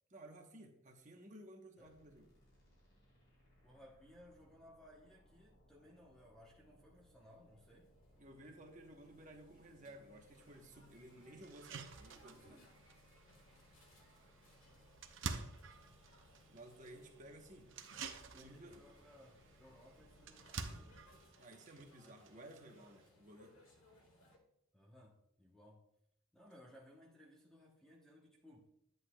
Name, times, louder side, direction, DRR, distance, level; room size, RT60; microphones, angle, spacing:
voice 1, 0.1-2.3 8.2-12.6 16.5-17.7 18.3-18.8 21.4-23.6, right 1 dB, 35° right, 3 dB, 1.0 m, -56 dB
sound 1, 1.8-21.4, equal, 50° left, 2.7 m, -69 dB
voice 2, 3.6-7.9 12.7-12.8 17.9-20.6 24.7-25.8 26.3-28.7, equal, 5° left, -3 dB, 0.9 m, -62 dB
sound 2, 6.8-24.4, left 1 dB, 70° left, 1.5 m, -67 dB
sound 3, 10.4-10.5 11.0-11.1 11.4-23.1, right 4 dB, 60° right, 0.7 m, -50 dB
10.5 x 7.9 x 2.3 m, 0.77 s
head